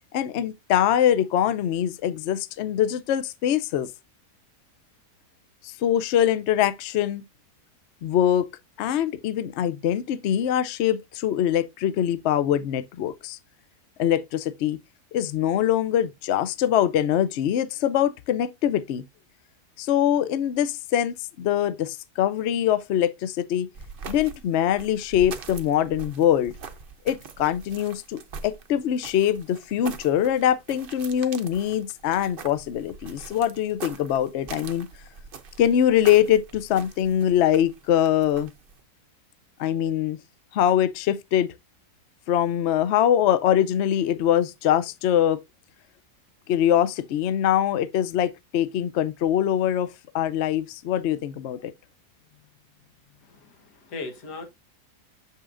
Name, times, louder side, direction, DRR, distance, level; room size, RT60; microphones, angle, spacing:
voice 1, 0.1-3.9 5.6-7.2 8.0-8.5 8.8-13.4 14.0-14.8 15.1-19.0 19.8-23.7 24.1-26.5 27.0-34.9 35.6-38.5 39.6-40.2 40.5-41.5 42.3-45.4 46.5-49.9 50.1-51.7, left 10 dB, 65° left, 0.7 m, -23 dB
sound 1, 23.7-38.8, right 5 dB, 50° right, 0.7 m, -43 dB
voice 2, 53.2-54.5, left 3 dB, 85° left, 2.0 m, -38 dB
7.1 x 5.5 x 2.5 m
omnidirectional pair, 1.7 m